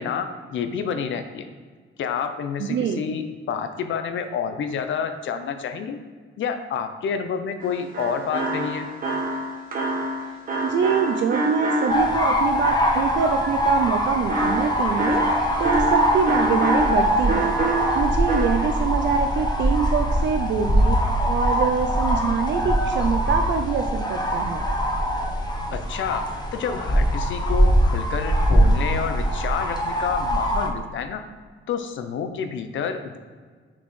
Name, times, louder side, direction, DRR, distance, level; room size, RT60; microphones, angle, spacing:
voice 1, 0.0-1.5 2.0-6.0 6.4-8.9 25.7-31.2 31.7-33.2, left 6 dB, 65° left, 8 dB, 0.6 m, -29 dB
voice 2, 2.6-3.1 10.6-17.5 18.0-21.0 21.3-24.7, right 6 dB, 60° right, 6 dB, 0.4 m, -25 dB
sound 1, 7.6-12.4 14.3-17.0 17.3-18.5, right 2 dB, 45° right, 1.2 m, -26 dB
sound 2, 11.9-30.7, equal, 20° left, 0.9 m, -22 dB
6.1 x 5.8 x 3.2 m, 1.5 s
cardioid pair, 135°, 21 cm